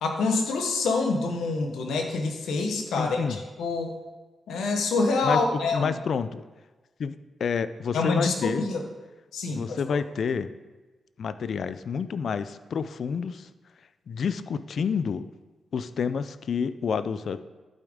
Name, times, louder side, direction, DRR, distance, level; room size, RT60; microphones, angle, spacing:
voice 1, 0.0-3.9 4.5-6.0 7.9-8.8 9.3-9.6, left 3 dB, 85° left, 4 dB, 1.0 m, -26 dB
voice 2, 3.0-3.4 5.2-6.4 7.0-7.1 7.4-8.6 9.5-10.5 11.2-13.5 14.1-15.3 15.7-17.4, left 6 dB, 70° left, 14 dB, 0.4 m, -29 dB
11.5 x 5.2 x 3.6 m, 1.2 s
supercardioid pair, 50°, 0 cm